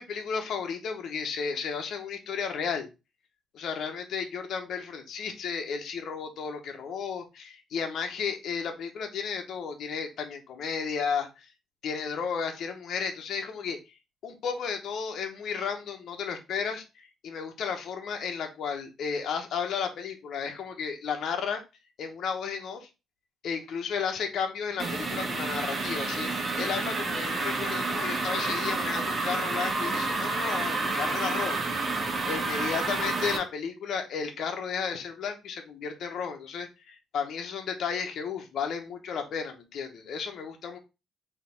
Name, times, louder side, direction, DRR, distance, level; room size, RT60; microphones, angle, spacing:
voice 1, 0.0-2.9 3.5-11.5 11.8-13.8 14.2-21.6 22.0-22.9 23.4-40.8, left 6 dB, 70° left, 4 dB, 0.9 m, -33 dB
sound 1, 24.8-33.4, right 3 dB, 35° right, 1.2 m, -29 dB
4.1 x 3.0 x 4.2 m, 0.26 s
cardioid pair, 90°, 0 cm